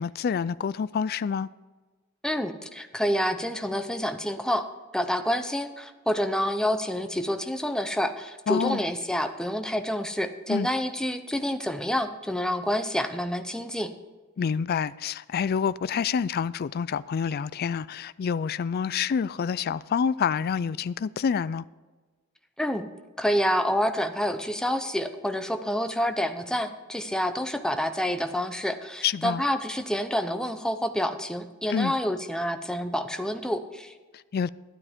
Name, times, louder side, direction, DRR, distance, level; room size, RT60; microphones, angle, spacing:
voice 1, 0.0-1.5 8.5-8.8 10.5-10.7 14.4-21.6 29.0-29.4 31.7-31.9 34.1-34.5, left 6 dB, 50° left, 0.3 m, -27 dB
voice 2, 2.2-4.7 4.9-13.9 22.6-22.9 23.2-33.9, equal, 5° left, 0.7 m, -28 dB
12.5 x 12.0 x 3.6 m
head